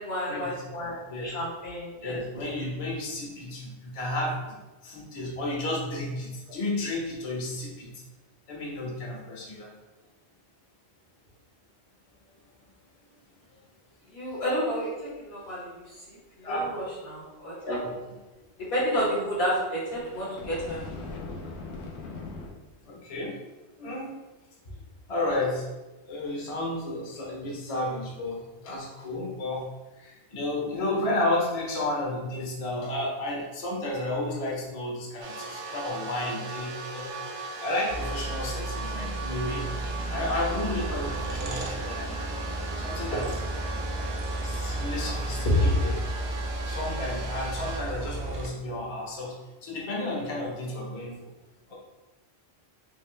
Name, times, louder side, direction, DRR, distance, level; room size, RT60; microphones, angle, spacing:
voice 1, 0.0-2.2 14.1-17.8 18.6-20.9 45.4-45.6, equal, 70° left, -6 dB, 1.5 m, -30 dB
voice 2, 2.0-4.5 4.8-7.9 8.5-9.7 16.4-16.7 17.8-17.9 22.8-23.4 23.8-24.1 25.1-25.7 26.1-29.7 30.0-37.1 37.6-39.7 40.1-42.1 42.8-43.3 44.4-45.9 46.6-49.3 49.6-51.3 51.7-51.8, left 1 dB, 40° left, -3 dB, 0.7 m, -32 dB
sound 1, 19.9-22.5, left 3 dB, 90° left, 0.9 m, -39 dB
sound 2, 35.2-47.8, right 3 dB, 45° right, 0.4 m, -38 dB
sound 3, 37.9-48.5, right 2 dB, 70° right, 0.8 m, -33 dB
3.7 x 2.6 x 3.2 m, 1.1 s
omnidirectional pair, 1.1 m